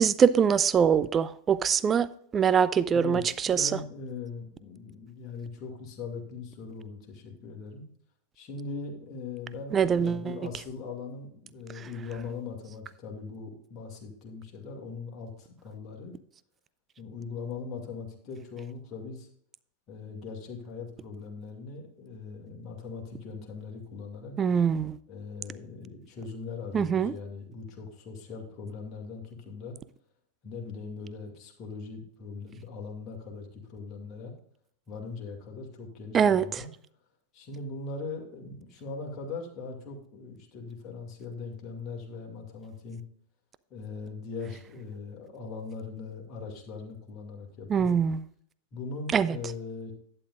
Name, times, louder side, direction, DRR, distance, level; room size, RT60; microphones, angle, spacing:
voice 1, 0.0-2.1 2.3-3.7 9.7-10.3 24.4-25.0 26.7-27.1 36.1-36.4 47.7-48.2 49.1-49.3, right 7 dB, 25° right, 0.4 m, -23 dB
voice 2, 2.9-7.8 8.3-16.1 17.0-19.3 19.9-24.3 25.1-29.8 30.4-34.3 34.9-36.7 37.3-43.0 43.7-48.0 48.7-49.9, left 4 dB, 30° left, 2.3 m, -40 dB
11.5 x 9.0 x 2.5 m
figure-of-eight pair, 90°, 0 cm